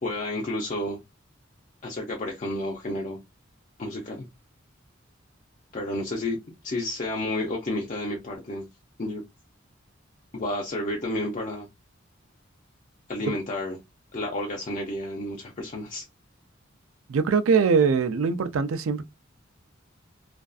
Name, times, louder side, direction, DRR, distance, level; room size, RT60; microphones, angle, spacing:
voice 1, 0.0-1.0 1.8-3.2 3.8-4.3 5.7-6.4 6.6-8.7 9.0-9.2 10.3-11.7 13.1-13.8 14.1-16.1, left 1 dB, 40° left, 0.5 m, -31 dB
voice 2, 17.1-19.0, right 5 dB, 85° right, 0.4 m, -22 dB
2.5 x 2.3 x 2.3 m
head